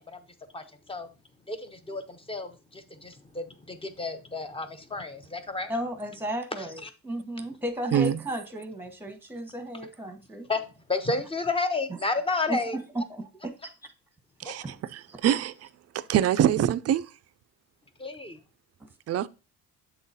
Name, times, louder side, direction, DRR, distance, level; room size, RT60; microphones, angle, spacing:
voice 1, 0.5-1.1 1.5-5.7 6.5-6.9 10.5-12.8 14.4-14.5 18.0-18.4, left 3 dB, 15° left, 0.8 m, -32 dB
voice 2, 5.7-10.5 12.5-13.9 14.6-14.8 15.1-15.2 18.8-18.9, right 1 dB, 5° right, 1.1 m, -34 dB
voice 3, 15.2-15.5 15.9-17.1 19.1-19.3, right 10 dB, 40° right, 0.4 m, -23 dB
8.0 x 3.9 x 4.0 m
cardioid pair, 150°, 38 cm